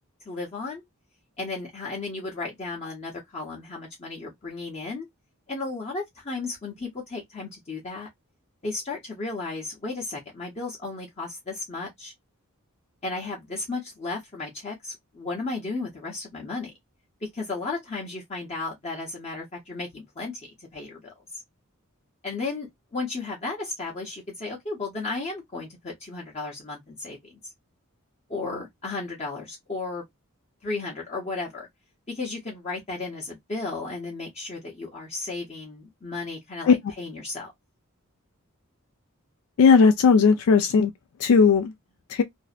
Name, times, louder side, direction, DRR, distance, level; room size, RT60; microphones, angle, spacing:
voice 1, 0.3-0.8 1.4-5.1 5.5-8.1 8.6-12.1 13.0-16.7 17.2-21.4 22.2-27.4 28.3-30.0 30.6-31.7 32.1-37.5, left 3 dB, 30° left, 0.7 m, -34 dB
voice 2, 39.6-40.9 41.2-41.7 42.1-42.2, left 5 dB, 80° left, 0.3 m, -17 dB
2.6 x 2.0 x 2.3 m
head